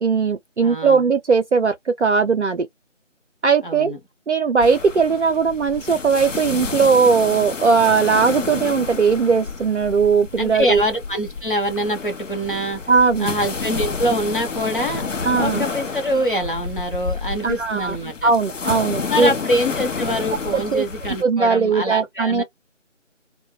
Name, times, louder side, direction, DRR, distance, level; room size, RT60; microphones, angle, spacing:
voice 1, 0.0-2.7 3.4-3.9 4.3-10.8 12.9-13.3 15.2-15.7 17.4-18.0 18.2-19.3 20.5-20.8 21.2-22.4, right 5 dB, 65° right, 0.5 m, -18 dB
voice 2, 0.6-1.0 3.6-4.0 10.4-12.8 13.2-15.1 15.3-18.3 19.1-22.4, equal, 45° left, 0.8 m, -24 dB
sound 1, 4.6-21.2, left 4 dB, 75° left, 0.7 m, -30 dB
2.2 x 2.0 x 3.0 m
figure-of-eight pair, 175°, 38 cm